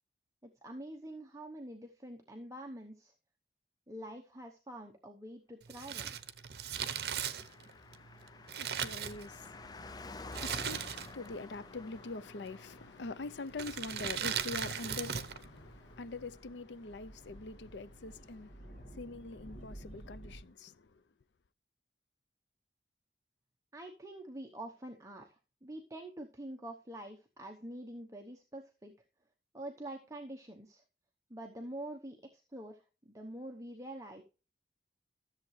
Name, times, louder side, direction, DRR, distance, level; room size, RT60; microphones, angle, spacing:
voice 1, 0.4-3.1 3.9-6.1 23.7-28.9 29.5-30.8 31.3-34.2, right 1 dB, 20° right, 0.9 m, -46 dB
Crumpling crinkling, 5.7-9.7 10.3-11.3 11.6-11.7 12.5-12.9 13.5-15.4 15.7-15.8, right 8 dB, 60° right, 0.8 m, -38 dB
Car passing by, 6.5-18.4 18.6-18.7, left 3 dB, 20° left, 0.4 m, -53 dB
voice 2, 7.3-21.0, left 3 dB, 80° left, 0.6 m, -45 dB
sound 1, 8.8-20.4, equal, 55° left, 2.5 m, -55 dB
13.5 x 7.4 x 3.2 m
head